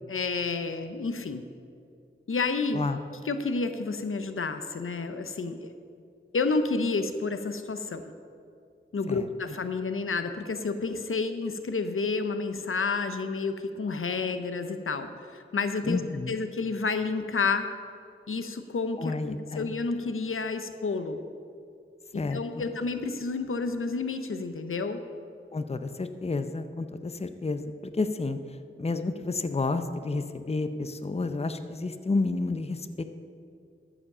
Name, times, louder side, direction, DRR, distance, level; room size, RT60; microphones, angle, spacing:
voice 1, 0.1-1.4 2.3-2.8 3.2-5.7 6.3-8.0 8.9-16.0 16.3-17.7 18.3-21.2 22.1-25.0, left 4 dB, 80° left, 9 dB, 0.7 m, -30 dB
voice 2, 15.8-16.4 19.0-19.7 22.1-22.6 25.5-27.6 27.9-33.0, left 3 dB, 30° left, 9 dB, 0.6 m, -30 dB
13.5 x 5.0 x 6.7 m, 2.4 s
wide cardioid pair, 55°, 21 cm